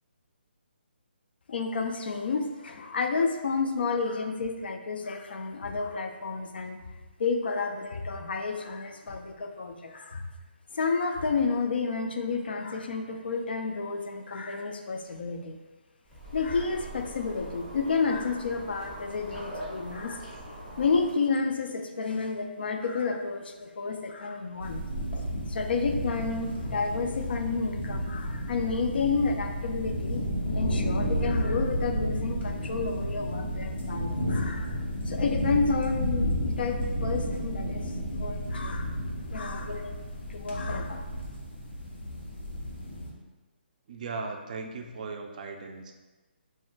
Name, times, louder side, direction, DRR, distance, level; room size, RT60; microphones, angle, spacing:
voice 1, 1.5-6.8 7.2-10.3 10.7-15.6 16.3-20.2 20.8-24.9 25.5-30.2 30.5-34.7 35.1-37.9 38.2-38.9 39.3-40.0 40.3-41.0, left 4 dB, 65° left, 5 dB, 0.3 m, -30 dB
sound 1, 16.1-21.1, equal, 10° left, 0.6 m, -42 dB
sound 2, 24.6-43.1, equal, 90° left, 1.0 m, -32 dB
voice 2, 43.9-45.9, right 4 dB, 45° right, 4 dB, 0.3 m, -37 dB
2.5 x 2.0 x 3.7 m, 1.2 s
figure-of-eight pair, 150°, 6 cm